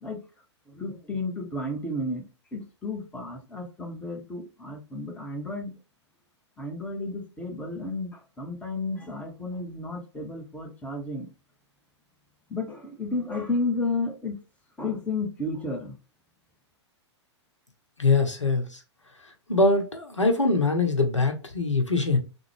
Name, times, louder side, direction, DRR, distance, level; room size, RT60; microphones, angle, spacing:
voice 1, 0.7-2.2 2.5-5.7 6.6-11.3 12.5-14.4 14.8-15.9, left 2 dB, 10° left, 0.9 m, -32 dB
voice 2, 18.0-18.8 19.5-22.2, left 3 dB, 90° left, 0.8 m, -23 dB
3.7 x 2.1 x 3.2 m
figure-of-eight pair, 105°, 15 cm